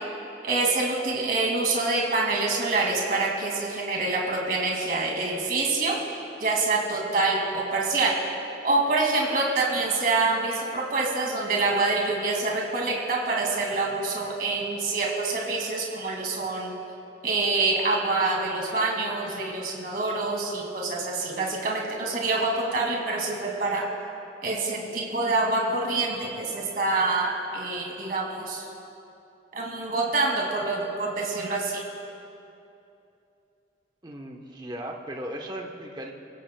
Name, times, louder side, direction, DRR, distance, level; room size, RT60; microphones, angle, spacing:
voice 1, 0.4-6.0 6.4-8.1 8.6-16.7 17.2-23.9 24.4-28.7 29.5-31.8, right 3 dB, 50° right, -2 dB, 2.3 m, -26 dB
voice 2, 34.0-36.1, right 1 dB, 25° right, 1 dB, 1.0 m, -37 dB
24.0 x 15.5 x 2.3 m, 2.8 s
head